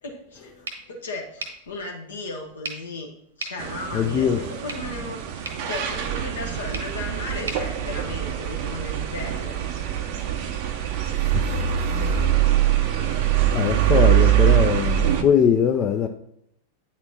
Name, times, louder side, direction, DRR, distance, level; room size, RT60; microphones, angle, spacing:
voice 1, 0.0-3.1 3.4-9.6 13.1-13.2 13.6-14.3, left 2 dB, 70° left, 0.8 m, -36 dB
sound 1, 0.6-8.7, right 3 dB, 75° right, 1.0 m, -41 dB
sound 2, 3.6-15.2, right 11 dB, 45° right, 0.5 m, -23 dB
voice 2, 3.9-4.4 11.3-11.4 13.5-16.1, left 8 dB, 30° left, 0.3 m, -21 dB
8.6 x 4.3 x 2.7 m
figure-of-eight pair, 90°, 0 cm